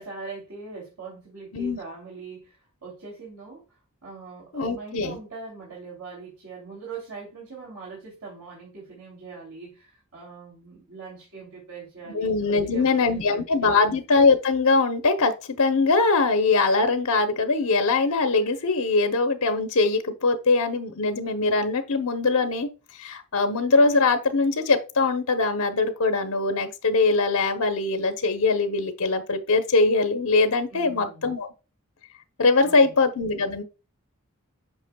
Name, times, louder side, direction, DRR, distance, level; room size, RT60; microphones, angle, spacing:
voice 1, 0.0-14.0 30.7-31.3 32.6-33.0, right 4 dB, 85° right, 2.9 m, -41 dB
voice 2, 4.5-5.2 12.1-22.7 23.0-31.5 32.4-33.6, left 3 dB, 80° left, 0.9 m, -22 dB
8.1 x 6.0 x 2.3 m
head